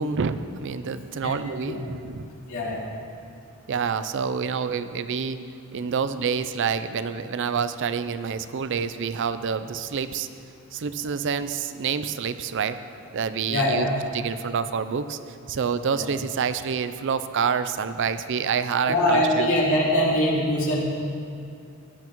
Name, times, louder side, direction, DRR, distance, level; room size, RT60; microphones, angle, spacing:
voice 1, 0.0-2.3 3.7-5.4 5.7-10.3 10.7-12.8 13.1-13.9 14.1-19.5, right 6 dB, 55° right, 12 dB, 0.4 m, -27 dB
voice 2, 2.5-2.8 13.5-14.0 15.9-16.0 18.9-20.8, left 1 dB, 65° left, -5 dB, 2.4 m, -23 dB
16.5 x 11.0 x 3.0 m, 2.5 s
head